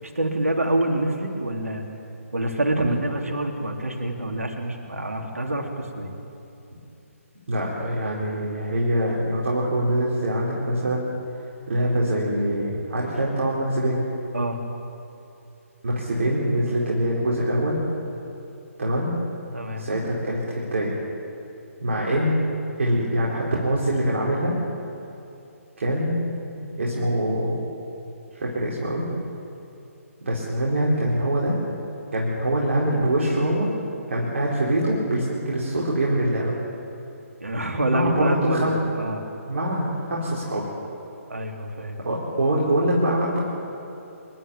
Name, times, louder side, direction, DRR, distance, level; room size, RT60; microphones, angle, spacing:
voice 1, 0.0-1.8 2.3-6.1 14.3-14.6 19.5-19.8 22.0-22.2 37.4-39.2 41.3-42.0, right 1 dB, 75° right, 2 dB, 3.1 m, -26 dB
voice 2, 7.5-11.1 11.7-14.1 15.8-17.8 18.8-19.1 19.8-20.9 21.8-22.4 22.8-24.6 25.8-26.2 26.6-27.6 28.3-29.1 30.2-31.6 32.1-33.7 34.1-36.6 37.9-38.8 39.5-40.7 42.0-43.4, right 1 dB, 55° right, -4 dB, 4.5 m, -24 dB
27.5 x 11.5 x 9.1 m, 2.8 s
figure-of-eight pair, 140°, 8 cm